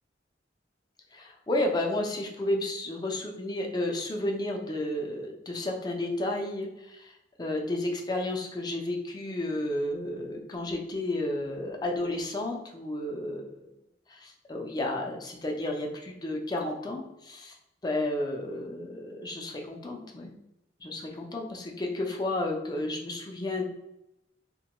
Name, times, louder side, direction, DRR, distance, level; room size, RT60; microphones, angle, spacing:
voice 1, 1.1-7.1 7.4-13.7 14.1-17.6 17.8-20.3 20.8-23.6, left 1 dB, 25° left, 1 dB, 0.4 m, -32 dB
2.9 x 2.2 x 2.9 m, 0.86 s
head